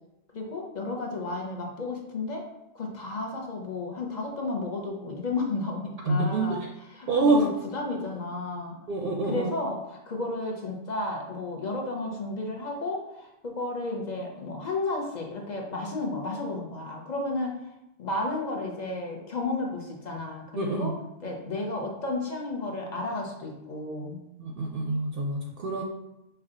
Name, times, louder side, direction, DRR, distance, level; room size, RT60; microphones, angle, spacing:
voice 1, 0.3-2.5 2.7-8.8 9.2-17.6 18.0-24.2, left 2 dB, 45° left, 0 dB, 0.7 m, -33 dB
voice 2, 6.1-6.6 7.1-7.5 8.9-9.5 20.6-20.9 24.4-25.8, right 2 dB, 60° right, 1 dB, 0.6 m, -26 dB
5.5 x 2.2 x 3.7 m, 0.88 s
omnidirectional pair, 1.2 m